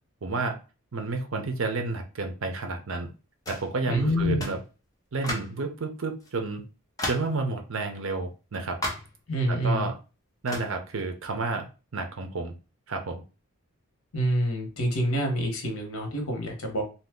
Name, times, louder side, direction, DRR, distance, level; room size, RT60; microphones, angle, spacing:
voice 1, 0.2-0.6 0.9-3.1 3.5-4.6 5.1-6.6 7.1-8.8 9.5-9.9 10.4-11.7 11.9-12.5 12.9-13.2, right 3 dB, 65° right, 5 dB, 0.6 m, -30 dB
sound 1, 3.5-3.7 4.4-4.6 5.2-5.6 6.2-6.3 7.0-7.4 8.8-9.2 10.5-10.8, left 1 dB, 15° left, 0.6 m, -33 dB
voice 2, 3.8-4.4 9.3-9.9 14.1-16.8, equal, 75° left, 3 dB, 1.0 m, -27 dB
2.8 x 2.3 x 3.5 m, 0.33 s
head